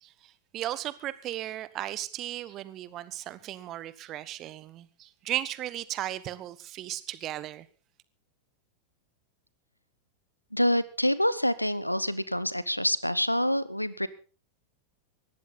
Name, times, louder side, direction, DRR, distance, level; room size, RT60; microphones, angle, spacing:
voice 1, 0.0-7.7, right 13 dB, 35° right, 1.3 m, -36 dB
voice 2, 10.5-14.1, equal, 90° left, 0.9 m, -26 dB
19.0 x 14.5 x 4.0 m
figure-of-eight pair, 90°, 0 cm